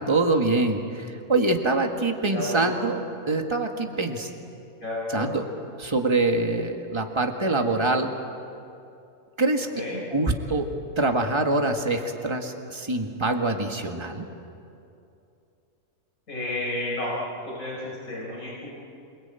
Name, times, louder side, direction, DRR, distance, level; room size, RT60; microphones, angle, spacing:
voice 1, 0.0-4.3 5.1-5.5 5.8-8.1 9.4-9.7 10.1-10.7 11.0-14.2, right 2 dB, 20° right, 4 dB, 1.8 m, -25 dB
voice 2, 2.3-2.8 4.8-5.3 6.9-7.0 9.7-10.0 16.3-17.2 17.4-18.7, left 2 dB, 70° left, -5 dB, 5.5 m, -32 dB
28.0 x 21.0 x 9.1 m, 2.7 s
omnidirectional pair, 1.5 m